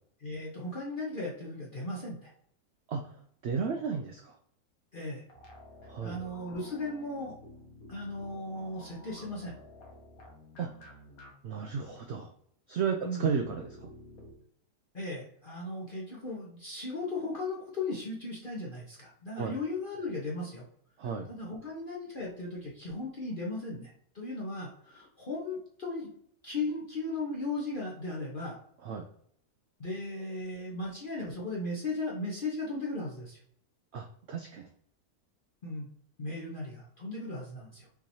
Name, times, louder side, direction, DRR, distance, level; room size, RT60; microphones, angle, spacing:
voice 1, 0.2-2.3 4.9-5.2 6.0-7.4 7.9-9.5 13.0-13.3 14.9-20.6 21.0-26.1 26.4-28.6 29.8-33.4 35.6-35.9 36.2-37.9, left 2 dB, 40° left, -4 dB, 0.9 m, -37 dB
voice 2, 3.4-4.3 5.9-6.2 10.6-10.7 11.4-12.3 12.7-13.9 19.4-19.5 21.0-21.3 28.8-29.1 33.9-34.7, right 6 dB, 65° right, 5 dB, 0.6 m, -33 dB
sound 1, 5.3-11.3 11.6-11.7 13.3-14.3, left 1 dB, 70° left, 1.5 m, -51 dB
6.0 x 3.1 x 2.7 m, 0.65 s
omnidirectional pair, 1.6 m